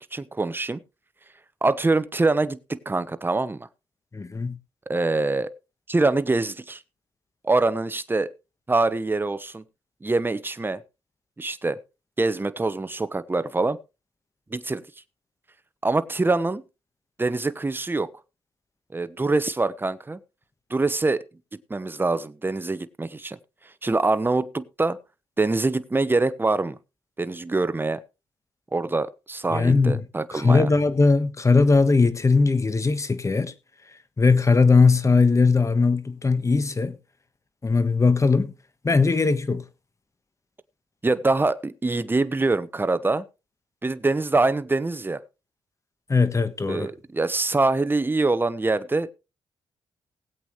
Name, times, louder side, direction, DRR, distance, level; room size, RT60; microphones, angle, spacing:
voice 1, 0.1-0.8 1.6-3.7 4.9-5.5 5.9-6.8 7.4-8.3 8.7-9.6 10.0-10.8 11.4-11.8 12.2-13.8 14.5-14.8 15.8-16.6 17.2-18.1 18.9-20.2 20.7-21.2 21.7-23.4 23.8-25.0 25.4-26.8 27.2-28.0 28.7-30.7 41.0-43.2 43.8-45.2 46.7-49.1, right 3 dB, 20° right, 1.0 m, -24 dB
voice 2, 4.1-4.6 29.5-30.0 30.3-33.5 34.2-36.9 37.6-38.5 38.8-39.6 46.1-46.9, left 4 dB, 30° left, 1.3 m, -19 dB
19.5 x 8.3 x 3.2 m
cardioid pair, 70°, 10 cm